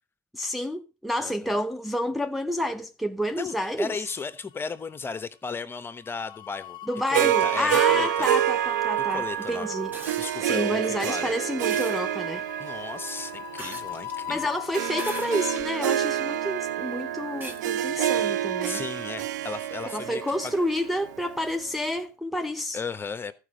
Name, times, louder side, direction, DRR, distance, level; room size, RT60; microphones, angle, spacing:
voice 1, 0.3-3.9 6.9-12.5 14.3-18.8 19.9-22.8, equal, ahead, 0.7 m, -29 dB
voice 2, 3.4-6.8 7.1-8.3 9.1-9.7 10.2-11.3 12.6-14.5 18.6-20.5 22.7-23.3, left 5 dB, 25° left, 1.0 m, -35 dB
sound 1, 3.5-4.3 4.6-4.8 6.0-15.6, left 12 dB, 55° left, 0.5 m, -40 dB
Harp, 7.1-21.5, right 12 dB, 85° right, 0.5 m, -28 dB
sound 2, 9.9-10.4 11.7-12.0 13.6-14.2 14.9-15.7 16.3-16.4 17.4-17.6 19.1-19.2, right 2 dB, 20° right, 1.5 m, -39 dB
14.0 x 5.1 x 5.2 m
hypercardioid pair, 80°, 9 cm